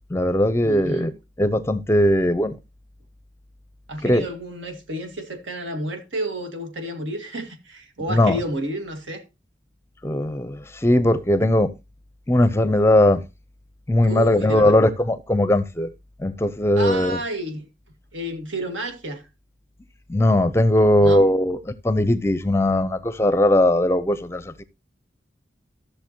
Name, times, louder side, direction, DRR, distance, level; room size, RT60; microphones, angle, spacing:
voice 1, 0.1-1.1 1.4-2.6 4.0-4.3 8.1-8.4 10.0-11.7 12.3-13.2 13.9-15.9 16.2-17.2 20.1-24.6, left 1 dB, 15° left, 0.5 m, -19 dB
voice 2, 0.6-1.1 3.9-9.2 14.0-14.8 16.8-17.7 18.1-19.2 21.0-21.2, right 1 dB, 90° right, 2.0 m, -31 dB
14.0 x 6.7 x 2.9 m
head